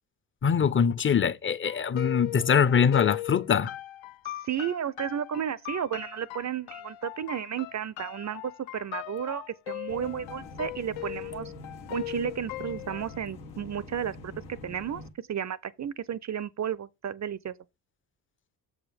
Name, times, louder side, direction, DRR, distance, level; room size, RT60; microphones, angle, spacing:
voice 1, 0.4-3.7, left 7 dB, 25° left, 0.7 m, -23 dB
sound 1, 1.6-13.2, left 16 dB, 65° left, 0.7 m, -39 dB
voice 2, 4.3-11.5 11.9-17.6, right 9 dB, 35° right, 0.5 m, -33 dB
sound 2, 9.9-15.1, left 2 dB, 85° left, 1.4 m, -45 dB
7.3 x 5.0 x 5.1 m
hypercardioid pair, 45°, 49 cm